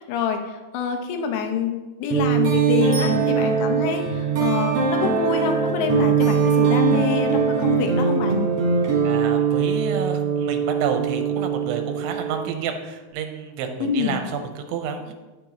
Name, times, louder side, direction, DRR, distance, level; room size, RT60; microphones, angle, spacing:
voice 1, 0.0-8.4 13.8-14.2, left 7 dB, 80° left, 5 dB, 3.0 m, -26 dB
sound 1, 2.1-12.7, right 6 dB, 50° right, 2.0 m, -21 dB
Bicycle bell, 2.9-4.0 13.1-13.2, equal, 30° left, 2.4 m, -38 dB
voice 2, 9.0-15.1, right 6 dB, 85° right, 5 dB, 3.1 m, -30 dB
10.0 x 8.1 x 3.0 m, 1.2 s
omnidirectional pair, 5.4 m